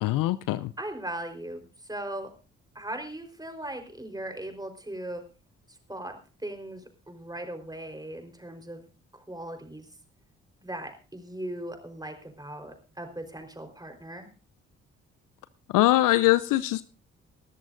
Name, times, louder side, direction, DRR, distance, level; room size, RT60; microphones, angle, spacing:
voice 1, 0.0-0.7 15.7-16.8, left 16 dB, 65° left, 16 dB, 0.6 m, -22 dB
voice 2, 0.8-2.3 2.7-5.2 5.9-6.1 6.4-8.8 9.1-9.9 10.6-14.3, right 1 dB, 10° right, 5 dB, 4.0 m, -38 dB
21.5 x 13.5 x 2.6 m, 0.34 s
hypercardioid pair, 40°, 35 cm